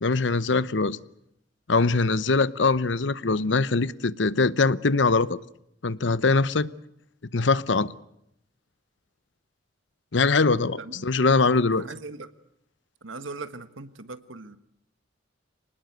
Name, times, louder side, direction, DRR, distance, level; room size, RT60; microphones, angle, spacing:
voice 1, 0.0-1.0 1.7-5.4 5.8-6.7 7.3-7.9 10.1-11.8, left 3 dB, 65° left, 0.9 m, -22 dB
voice 2, 10.8-11.3 11.7-12.3 13.0-14.6, right 3 dB, 85° right, 1.6 m, -39 dB
25.5 x 19.5 x 8.1 m
head